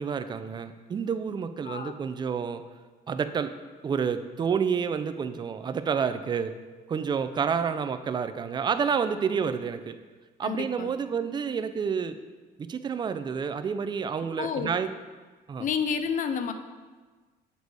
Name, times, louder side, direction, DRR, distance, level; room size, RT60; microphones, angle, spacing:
voice 1, 0.0-2.6 3.1-3.5 3.8-6.5 6.9-10.0 10.4-12.2 12.6-14.9 15.5-15.7, right 6 dB, 25° right, 10 dB, 0.4 m, -29 dB
voice 2, 10.4-10.9 14.4-14.7 15.6-16.5, left 6 dB, 50° left, 8 dB, 0.6 m, -30 dB
6.7 x 4.0 x 4.7 m, 1.3 s
cardioid pair, 110°, 17 cm